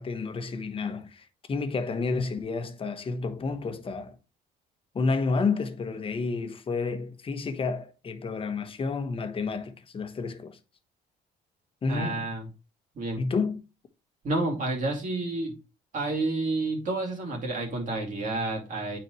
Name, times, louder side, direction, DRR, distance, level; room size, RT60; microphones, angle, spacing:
voice 1, 0.0-4.2 4.9-10.6 11.8-12.3 13.2-13.6, left 4 dB, 30° left, 1.0 m, -30 dB
voice 2, 11.9-12.5 12.9-13.2 14.2-15.6 15.9-19.0, right 2 dB, 50° right, 2.6 m, -30 dB
9.2 x 4.1 x 3.1 m
cardioid pair, 110°, 17 cm